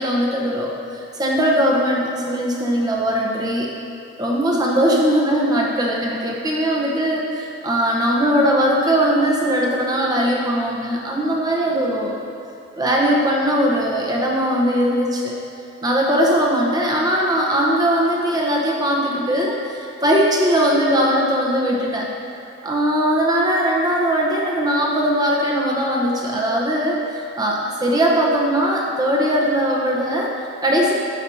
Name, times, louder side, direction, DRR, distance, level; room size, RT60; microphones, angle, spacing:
voice 1, 0.0-3.7 4.2-12.2 12.7-15.3 15.8-22.1 22.6-30.9, equal, 20° right, -2 dB, 1.0 m, -20 dB
11.0 x 7.2 x 2.8 m, 2.9 s
head